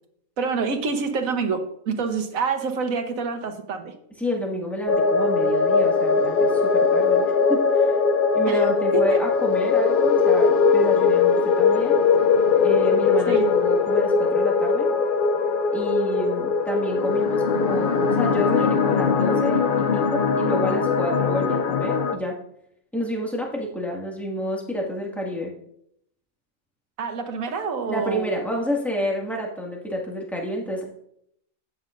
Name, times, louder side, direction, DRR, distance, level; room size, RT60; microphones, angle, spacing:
voice 1, 0.4-3.9 8.5-9.2 13.3-13.5 27.0-28.3, right 5 dB, 75° right, 6 dB, 1.4 m, -27 dB
voice 2, 4.2-7.2 7.5-7.9 8.3-12.0 12.6-14.9 15.7-22.4 22.9-25.5 27.9-30.9, equal, ahead, -2 dB, 1.8 m, -29 dB
sound 1, 4.9-22.2, left 5 dB, 90° left, 0.4 m, -20 dB
12.5 x 8.8 x 2.5 m, 0.72 s
omnidirectional pair, 1.5 m